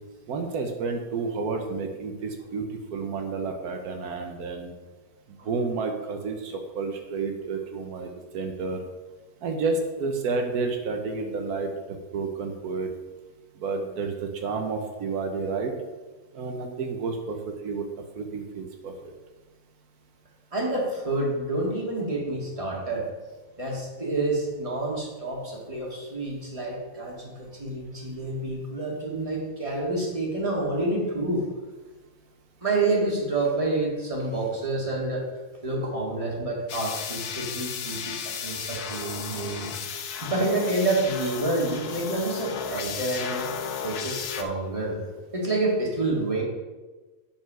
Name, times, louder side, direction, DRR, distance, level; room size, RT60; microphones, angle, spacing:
voice 1, 0.3-4.7 5.4-8.8 9.4-12.9 13.6-15.7 16.3-17.4 17.6-17.8 18.2-19.1, right 4 dB, 85° right, 4 dB, 1.4 m, -30 dB
voice 2, 20.5-23.0 23.6-31.5 32.6-35.2 35.6-39.7 40.2-43.5 43.8-45.0 45.3-46.4, right 2 dB, 20° right, -2 dB, 2.0 m, -28 dB
sound 1, 36.7-44.4, left 7 dB, 90° left, 1.3 m, -34 dB
9.1 x 4.7 x 6.1 m, 1.3 s
omnidirectional pair, 1.6 m